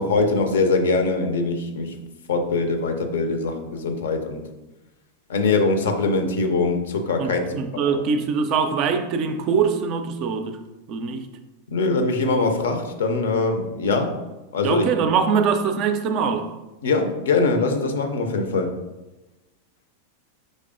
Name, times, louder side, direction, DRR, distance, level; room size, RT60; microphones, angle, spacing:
voice 1, 0.0-1.9 2.3-4.4 5.3-7.4 7.7-8.0 11.7-14.1 14.5-14.8 16.8-18.7, left 3 dB, 60° left, 0.5 m, -22 dB
voice 2, 7.2-10.6 10.9-11.3 14.6-16.5, right 6 dB, 40° right, 0.4 m, -23 dB
5.2 x 3.2 x 2.5 m
figure-of-eight pair, 90°, 0 cm